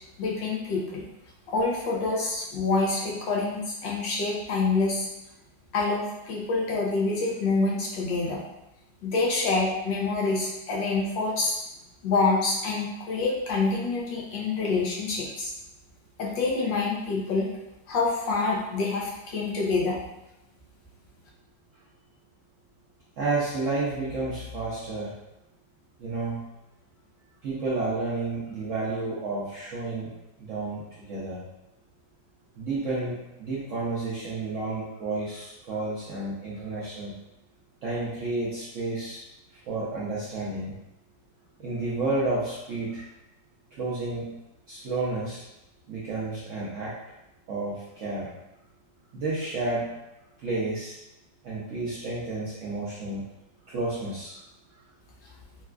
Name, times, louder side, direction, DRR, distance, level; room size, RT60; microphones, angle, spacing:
voice 1, 0.2-1.1 1.5-5.1 5.7-8.4 9.0-11.5 12.0-15.5 16.2-17.5 17.9-20.0, left 3 dB, 90° left, -3 dB, 1.4 m, -26 dB
voice 2, 23.2-25.2 26.0-26.5 27.4-30.1 30.4-31.4 32.6-37.1 37.8-39.2 39.5-40.8 41.6-43.1 43.7-44.3 44.7-45.4 45.9-46.9 47.5-48.3 49.1-49.9 50.4-51.0 51.4-53.2 53.7-54.4, right 2 dB, 70° right, -8 dB, 0.7 m, -31 dB
4.1 x 2.2 x 2.3 m, 0.91 s
omnidirectional pair, 2.0 m